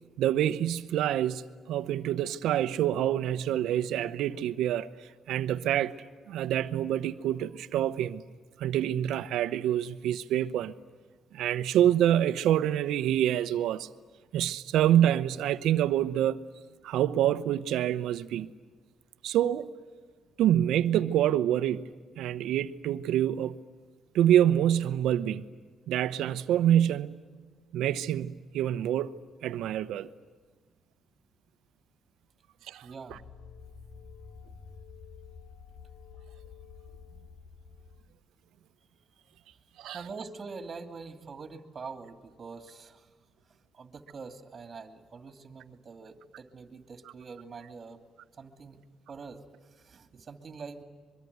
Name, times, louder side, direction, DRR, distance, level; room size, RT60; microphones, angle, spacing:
voice 1, 0.2-1.4 1.7-4.9 5.3-5.9 6.3-8.2 8.6-10.7 11.3-13.9 14.3-16.4 16.8-18.5 19.2-19.7 20.4-21.8 22.2-23.6 24.1-25.4 25.9-27.2 27.7-29.1 29.4-30.1 32.7-32.9 39.8-40.0, right 11 dB, 85° right, 0.9 m, -26 dB
voice 2, 32.8-33.2 39.9-43.1 43.7-48.0 48.4-48.8 49.1-49.4 49.7-50.8, right 4 dB, 40° right, 2.5 m, -44 dB
sound 1, 33.1-38.1, left 6 dB, 65° left, 1.7 m, -49 dB
24.0 x 23.5 x 9.5 m
cardioid pair, 90°, 0 cm